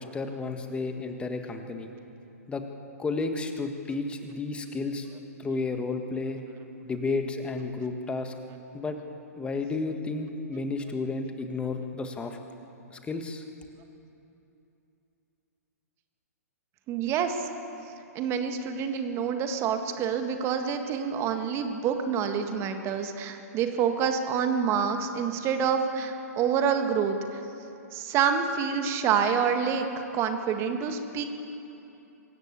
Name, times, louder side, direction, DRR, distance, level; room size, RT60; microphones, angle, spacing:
voice 1, 0.0-1.9 2.5-2.6 3.0-6.4 6.8-8.3 8.7-9.0 9.4-12.4 12.9-13.4, left 3 dB, 10° left, 5 dB, 1.7 m, -32 dB
voice 2, 16.9-17.5 18.2-27.4 27.9-31.2, right 7 dB, 30° right, 6 dB, 1.9 m, -27 dB
25.0 x 14.0 x 8.4 m, 2.9 s
hypercardioid pair, 125°, 9 cm